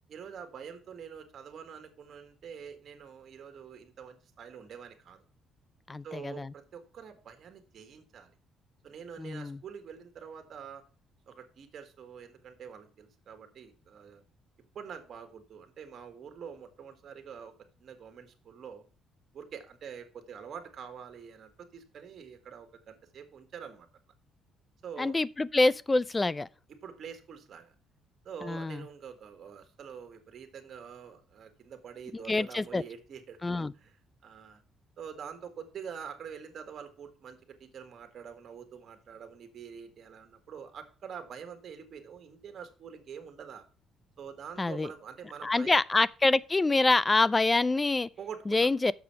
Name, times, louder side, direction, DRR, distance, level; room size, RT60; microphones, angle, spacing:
voice 1, 0.1-5.2 6.0-8.3 8.8-10.8 11.3-14.2 14.7-17.5 17.8-18.8 19.3-23.9 24.8-25.2 26.7-27.7 28.2-34.0 34.2-34.6 35.0-43.6 44.2-45.8 48.2-48.7, right 7 dB, 50° right, 1.7 m, -46 dB
voice 2, 5.9-6.5 9.2-9.6 25.0-26.5 28.4-28.8 32.1-32.8 33.4-33.7 44.6-44.9 45.4-48.1 48.5-48.9, left 2 dB, 15° left, 0.3 m, -26 dB
6.9 x 6.1 x 5.6 m
cardioid pair, 120°, 0 cm